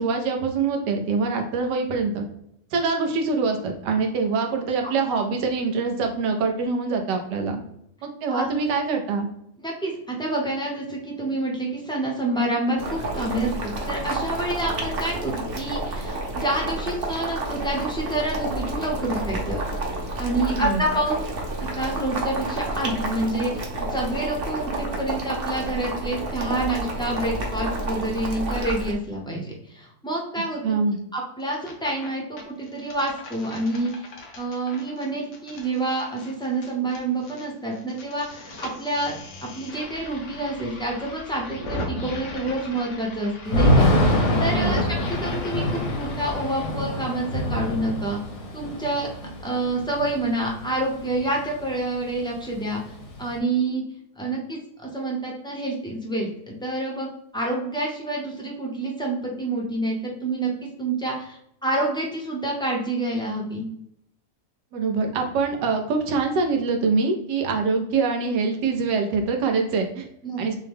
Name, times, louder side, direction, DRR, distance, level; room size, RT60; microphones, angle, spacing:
voice 1, 0.0-2.2 2.7-7.6 8.0-9.3 20.3-20.8 30.6-31.0 44.5-44.8 64.7-70.0 70.4-70.6, right 4 dB, 80° right, 3 dB, 1.4 m, -24 dB
voice 2, 9.6-19.6 20.2-21.2 21.6-30.8 31.1-34.1 34.4-43.9 44.4-44.8 45.1-48.2 48.5-49.1 49.4-52.8 53.2-53.8 54.2-60.5 60.8-63.7 70.2-70.4, right 2 dB, 5° left, -2 dB, 0.5 m, -28 dB
Boiling, 12.8-28.9, right 2 dB, 45° right, 0.8 m, -30 dB
sound 1, 31.4-32.1 32.4-37.5 37.7-46.7, left 1 dB, 85° left, 1.6 m, -37 dB
Thunder / Rain, 43.5-51.3 51.6-51.7 52.0-53.4, left 1 dB, 70° left, 1.7 m, -25 dB
6.6 x 2.2 x 3.5 m, 0.76 s
omnidirectional pair, 1.8 m